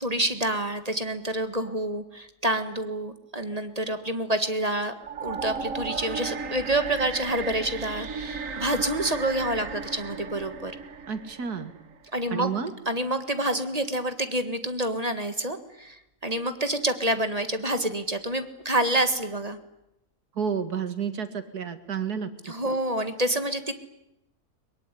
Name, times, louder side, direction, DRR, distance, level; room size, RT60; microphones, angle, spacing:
voice 1, 0.0-4.9 5.2-10.7 12.1-12.5 12.9-19.6 22.4-23.7, right 1 dB, 25° right, 9 dB, 1.8 m, -28 dB
sound 1, 5.0-12.1, right 5 dB, 55° right, 1.7 m, -35 dB
voice 2, 11.1-11.7 12.3-12.7 20.4-22.3, right 7 dB, 80° right, 10 dB, 2.5 m, -30 dB
23.0 x 22.5 x 10.0 m, 0.85 s
omnidirectional pair, 1.6 m